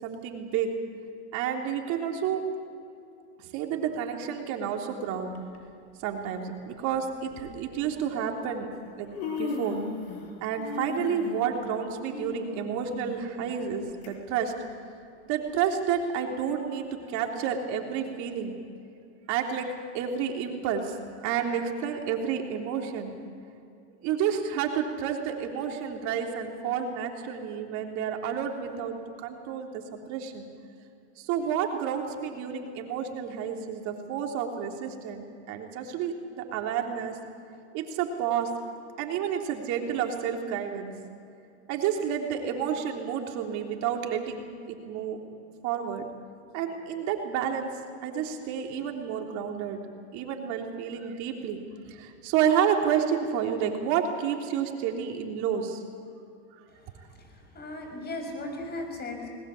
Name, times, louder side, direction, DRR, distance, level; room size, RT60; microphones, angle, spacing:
voice 1, 0.0-0.7 1.3-2.4 3.5-5.3 6.0-8.7 9.0-9.1 9.4-9.8 10.4-14.5 15.3-18.6 19.3-19.7 19.9-20.9 21.2-23.1 24.0-28.9 29.2-29.8 30.1-30.5 31.2-37.1 37.7-38.5 39.0-40.9 41.7-44.4 44.7-45.2 45.6-46.1 46.5-47.7 48.0-49.8 50.1-51.6 51.9-55.8, right 8 dB, 55° right, 2 dB, 3.4 m, -30 dB
Human voice, 5.3-5.6 6.6-6.7 7.3-7.5 8.5-8.6 8.9-10.3 10.6-14.1 14.5-14.6 15.4-15.5, left 4 dB, 65° left, 6.2 m, -36 dB
voice 2, 56.7-59.3, left 2 dB, 30° left, 3 dB, 6.4 m, -38 dB
20.5 x 20.0 x 8.5 m, 2.5 s
hypercardioid pair, 110°, 34 cm